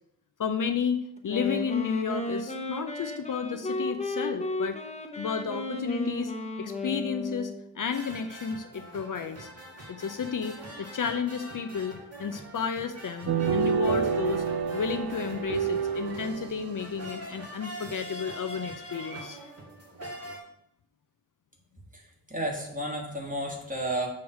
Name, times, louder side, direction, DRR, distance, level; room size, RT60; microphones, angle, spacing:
voice 1, 0.4-4.8 5.2-6.3 6.6-9.5 9.9-14.5 14.7-19.5, left 6 dB, 55° left, 8 dB, 0.5 m, -32 dB
Wind instrument woodwind instrument, 1.2-7.7, left 2 dB, 20° left, 0.8 m, -34 dB
sound 1, 7.9-20.4, right 1 dB, 40° right, 1.8 m, -44 dB
sound 2, 13.3-17.1, right 6 dB, 75° right, 0.5 m, -28 dB
voice 2, 22.3-24.1, right 1 dB, 20° right, -1 dB, 1.6 m, -31 dB
7.2 x 3.2 x 6.1 m, 0.79 s
wide cardioid pair, 110°, 38 cm